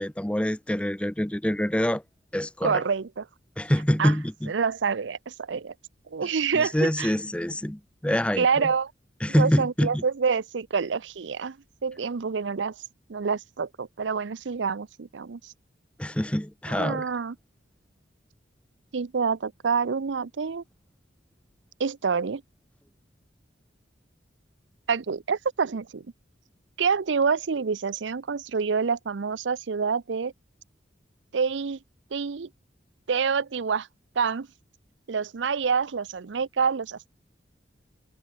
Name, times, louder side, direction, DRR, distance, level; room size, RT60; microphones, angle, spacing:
voice 1, 0.0-2.0 2.3-2.8 3.6-4.5 6.5-8.7 9.2-10.0 16.0-17.0, equal, 5° left, 0.6 m, -25 dB
voice 2, 2.6-3.2 4.0-4.2 4.5-5.7 6.1-7.1 8.3-8.9 9.4-11.6 11.8-12.8 13.1-15.5 16.7-17.4 18.9-20.6 21.8-22.4 24.9-26.1 26.8-30.3 31.3-31.8 32.1-32.5 33.1-33.9 34.2-34.5 35.1-37.1, right 5 dB, 80° right, 0.6 m, -27 dB
head